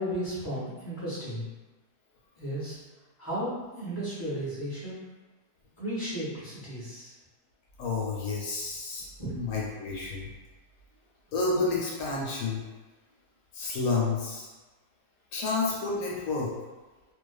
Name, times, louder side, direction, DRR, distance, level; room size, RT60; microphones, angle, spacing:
voice 1, 0.0-1.4 2.4-2.8 3.2-5.0 5.8-7.1 9.2-9.4, equal, 20° left, -9 dB, 0.5 m, -34 dB
voice 2, 7.8-9.1 9.3-10.3 11.3-12.6 13.5-14.5 15.3-16.5, left 3 dB, 70° left, -4 dB, 1.0 m, -30 dB
2.5 x 2.3 x 2.3 m, 1.2 s
omnidirectional pair, 1.7 m